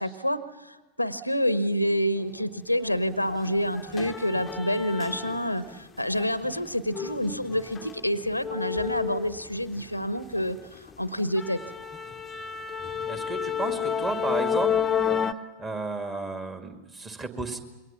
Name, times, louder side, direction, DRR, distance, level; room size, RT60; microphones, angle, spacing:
voice 1, 0.0-11.6, equal, 90° left, 15 dB, 0.9 m, -28 dB
sound 1, 2.8-3.0 3.3-5.7 6.1-9.9 10.2-10.5 10.9-11.0 11.4-15.3, left 8 dB, 20° left, 0.8 m, -31 dB
voice 2, 13.1-14.9 15.6-17.6, right 3 dB, 20° right, 6 dB, 2.2 m, -33 dB
27.0 x 22.5 x 7.1 m, 1.1 s
figure-of-eight pair, 90°, 0 cm